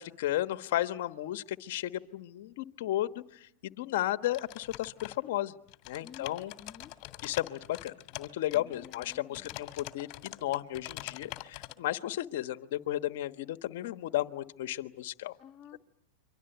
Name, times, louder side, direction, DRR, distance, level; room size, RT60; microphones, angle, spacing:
voice 1, 0.0-5.5 5.9-6.5 7.2-15.4, left 14 dB, 65° left, 11 dB, 1.3 m, -34 dB
sound 1, 4.2-5.4 5.7-11.7, left 17 dB, 45° left, 2.1 m, -44 dB
voice 2, 6.6-6.9 8.5-9.6 15.4-15.8, left 8 dB, 20° left, -3 dB, 2.4 m, -51 dB
29.0 x 24.5 x 8.1 m, 0.74 s
hypercardioid pair, 120°, 0 cm